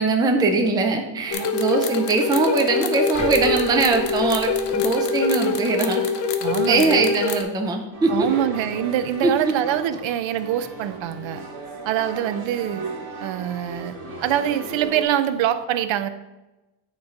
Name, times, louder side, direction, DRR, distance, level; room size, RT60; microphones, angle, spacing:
voice 1, 0.0-6.0 6.7-8.3 9.2-9.5, right 3 dB, 10° right, 4 dB, 0.3 m, -21 dB
sound 1, 1.3-7.4, left 3 dB, 60° left, 0.8 m, -24 dB
sound 2, 3.1-5.3 5.8-5.9, left 1 dB, 15° left, 1.0 m, -37 dB
voice 2, 6.4-7.1 8.1-11.5 11.8-12.8 13.2-16.1, right 11 dB, 70° right, 12 dB, 0.6 m, -24 dB
sound 3, 7.9-15.0, right 2 dB, 50° right, 1.6 m, -36 dB
9.5 x 3.2 x 5.0 m, 1.0 s
cardioid pair, 175°, 47 cm